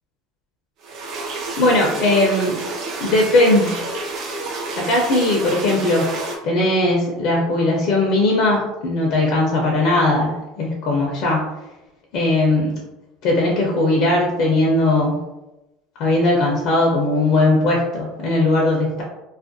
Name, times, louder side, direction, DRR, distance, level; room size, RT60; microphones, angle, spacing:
sound 1, 0.8-6.4, right 3 dB, 50° right, 0.5 m, -29 dB
voice 1, 1.6-2.6 3.0-3.8 4.8-11.5 12.1-12.8 13.2-15.2 16.0-19.0, left 2 dB, 60° left, -1 dB, 0.5 m, -19 dB
2.4 x 2.1 x 2.5 m, 0.99 s
supercardioid pair, 120°, 0 cm